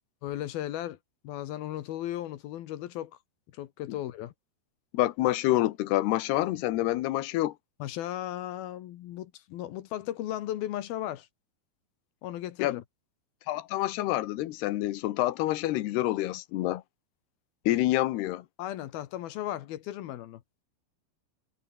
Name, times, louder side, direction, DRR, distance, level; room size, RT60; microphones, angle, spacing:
voice 1, 0.2-1.0 1.2-3.1 3.5-4.3 7.8-11.3 12.2-12.8 18.6-20.4, left 13 dB, 75° left, 3.0 m, -36 dB
voice 2, 4.9-7.5 12.6-12.8 13.5-16.8 17.7-18.5, left 16 dB, 90° left, 3.2 m, -27 dB
omnidirectional pair, 4.5 m